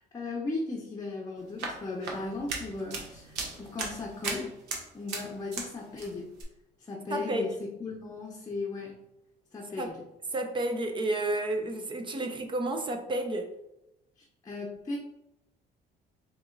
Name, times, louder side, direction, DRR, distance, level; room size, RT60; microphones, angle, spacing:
voice 1, 0.0-4.5 4.9-6.3 6.9-9.0 9.5-10.0 14.2-15.0, left 3 dB, 20° left, 0.7 m, -37 dB
sound 1, 1.4-5.7 6.0-6.4, right 4 dB, 80° right, 1.1 m, -37 dB
voice 2, 7.1-7.5 9.8-9.9 10.3-13.5, right 1 dB, 30° right, 0.6 m, -31 dB
4.1 x 3.0 x 3.7 m
cardioid pair, 110°, 17 cm